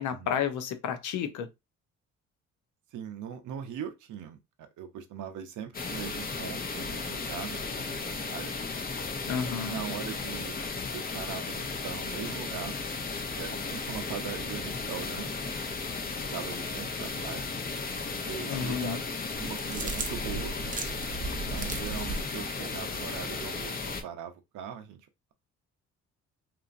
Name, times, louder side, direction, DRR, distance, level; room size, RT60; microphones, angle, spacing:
voice 1, 0.0-1.5 9.3-9.8 18.5-19.0, left 8 dB, 80° left, 0.7 m, -31 dB
voice 2, 2.9-8.5 9.4-10.6 10.9-12.7 13.4-15.3 16.3-17.5 18.2-19.0 19.4-20.5 21.2-25.0, right 8 dB, 75° right, 0.7 m, -40 dB
sound 1, 5.7-24.0, left 4 dB, 30° left, 0.6 m, -35 dB
sound 2, 19.4-22.3, right 3 dB, 25° right, 0.6 m, -36 dB
2.9 x 2.4 x 2.4 m
cardioid pair, 90°, 30 cm